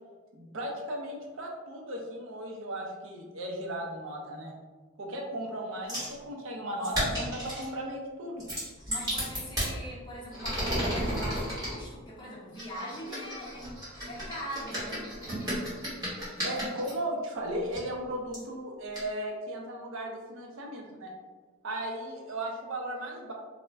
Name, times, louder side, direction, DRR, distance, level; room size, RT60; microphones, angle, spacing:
voice 1, 0.3-4.5 5.0-8.4 16.4-21.1 21.6-23.3, right 1 dB, 70° right, 0 dB, 0.5 m, -36 dB
sound 1, 5.9-6.1 6.8-7.7 8.4-9.7 10.3-11.7 12.6-16.9 17.7-17.8 18.3-18.4 18.9-19.0, equal, 15° right, 1.1 m, -33 dB
voice 2, 8.9-13.7 13.9-15.0, equal, 20° left, -5 dB, 0.5 m, -41 dB
2.3 x 2.1 x 3.3 m, 1.4 s
head